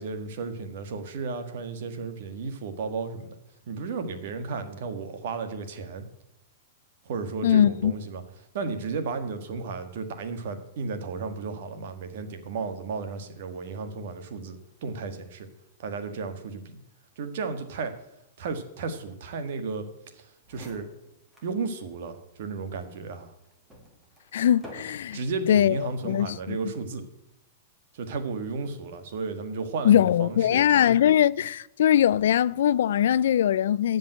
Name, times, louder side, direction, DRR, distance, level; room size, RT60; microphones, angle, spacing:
voice 1, 0.0-3.4 3.7-6.1 7.0-8.2 8.5-15.5 15.8-16.8 17.2-17.9 18.4-19.9 20.1-20.9 21.4-23.3 25.1-27.1 27.9-30.7, right 4 dB, 50° right, 1.6 m, -34 dB
voice 2, 7.4-7.9 24.3-25.2 25.5-25.8 26.0-26.6 29.8-34.0, left 10 dB, 70° left, 0.4 m, -21 dB
sound 1, 20.1-20.2 20.4-21.6 22.0-22.1 22.8-25.4 26.1-26.5, equal, 5° right, 1.8 m, -49 dB
15.5 x 5.4 x 9.0 m
supercardioid pair, 180°, 0 cm